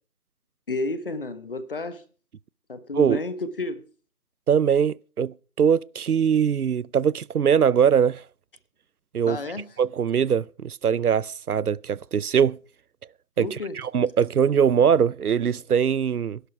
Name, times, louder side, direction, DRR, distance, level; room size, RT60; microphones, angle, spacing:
voice 1, 0.7-2.0 2.7-3.8 9.3-9.7 13.4-13.8, left 2 dB, 40° left, 1.2 m, -31 dB
voice 2, 4.5-8.2 9.1-9.4 9.8-12.6 13.4-13.5 13.8-16.4, right 7 dB, 80° right, 0.6 m, -22 dB
17.5 x 11.5 x 4.6 m
figure-of-eight pair, 160°, 44 cm